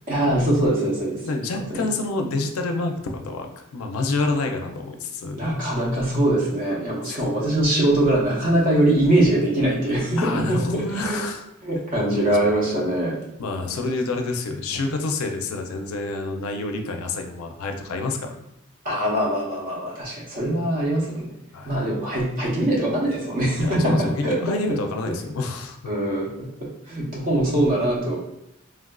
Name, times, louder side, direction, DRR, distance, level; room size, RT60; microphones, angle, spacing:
voice 1, 0.1-1.2 1.7-1.8 5.3-10.5 10.7-11.2 11.6-13.2 18.8-21.3 21.7-24.5 25.9-28.2, right 1 dB, 40° right, -5 dB, 0.7 m, -22 dB
voice 2, 1.2-5.4 7.0-7.2 10.2-11.5 12.3-12.4 13.4-18.3 21.5-21.7 23.6-25.9, left 3 dB, 90° left, 4 dB, 0.4 m, -28 dB
3.3 x 2.4 x 2.2 m, 0.84 s
head